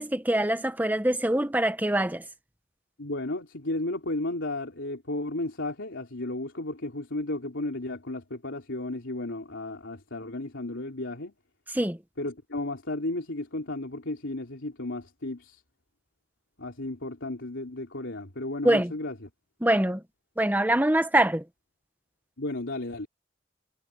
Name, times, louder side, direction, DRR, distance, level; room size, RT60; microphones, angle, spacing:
voice 1, 0.0-2.2 11.7-12.0 18.6-18.9 19.6-20.0 20.4-21.4, right 1 dB, 10° right, 1.2 m, -24 dB
voice 2, 3.0-11.3 12.2-15.6 16.6-19.3 22.4-23.1, left 2 dB, 85° left, 3.2 m, -33 dB
head